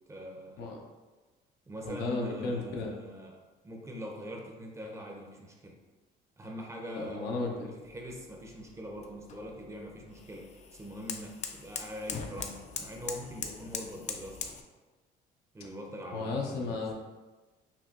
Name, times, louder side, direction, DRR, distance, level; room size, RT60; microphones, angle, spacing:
voice 1, 0.1-0.6 1.7-3.4 3.6-5.8 6.4-14.4 15.5-16.8, equal, 15° right, 1 dB, 0.6 m, -43 dB
voice 2, 1.8-2.9 6.9-7.7 16.1-16.9, left 3 dB, 85° left, 0 dB, 0.7 m, -34 dB
sound 1, 7.8-14.6, left 6 dB, 45° left, 0.4 m, -42 dB
5.7 x 2.3 x 2.4 m, 1.2 s
cardioid pair, 110°, 17 cm